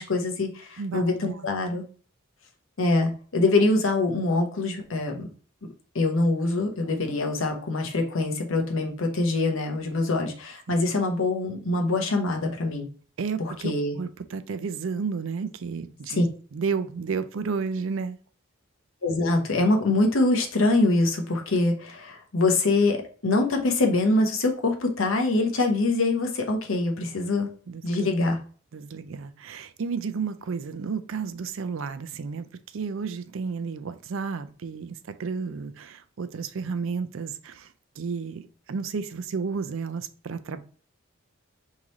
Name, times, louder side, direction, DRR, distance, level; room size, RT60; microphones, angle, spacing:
voice 1, 0.0-1.8 2.8-5.3 5.9-12.9 13.4-14.0 16.1-16.2 19.0-27.5 27.8-28.4, left 2 dB, 65° left, 0.9 m, -24 dB
voice 2, 0.8-1.4 10.7-10.8 13.2-16.2 16.5-18.2 27.7-28.1 28.7-32.5 32.7-40.6, right 5 dB, 65° right, 0.4 m, -32 dB
3.7 x 3.2 x 4.0 m
head